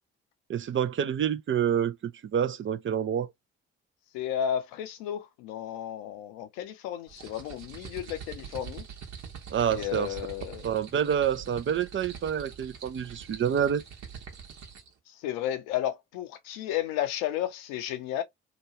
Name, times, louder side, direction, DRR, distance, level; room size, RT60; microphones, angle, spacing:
voice 1, 0.5-3.3 9.5-10.1 10.6-13.8, right 8 dB, 40° right, 0.5 m, -28 dB
voice 2, 4.1-8.9 9.7-10.7 15.1-18.2, left 11 dB, 80° left, 0.7 m, -33 dB
sound 1, 7.1-14.9, right 7 dB, 60° right, 1.1 m, -44 dB
2.9 x 2.3 x 2.8 m
hypercardioid pair, 50°, 31 cm